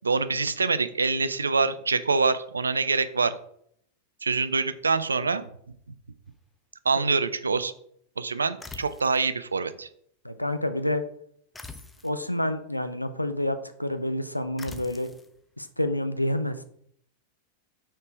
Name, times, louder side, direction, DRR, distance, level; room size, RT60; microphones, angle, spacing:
voice 1, 0.0-3.4 4.2-5.4 6.9-7.7 8.2-9.9, right 4 dB, 75° right, 14 dB, 0.4 m, -25 dB
sound 1, 8.6-9.3 11.5-12.2 14.6-15.3, left 3 dB, 10° left, 0.6 m, -43 dB
voice 2, 10.2-11.0 12.0-15.1 15.6-16.6, left 1 dB, 90° left, 9 dB, 0.5 m, -28 dB
5.8 x 4.5 x 4.5 m, 0.66 s
figure-of-eight pair, 90°, 0 cm